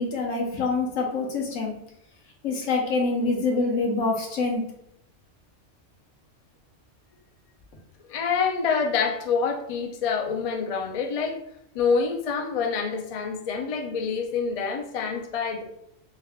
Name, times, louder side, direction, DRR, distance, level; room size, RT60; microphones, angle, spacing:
voice 1, 0.0-1.7 2.4-4.7, left 3 dB, 85° left, 1 dB, 1.2 m, -25 dB
voice 2, 8.1-11.4 11.7-15.6, left 5 dB, 65° left, 3 dB, 0.3 m, -26 dB
3.5 x 2.3 x 3.4 m, 0.75 s
omnidirectional pair, 1.3 m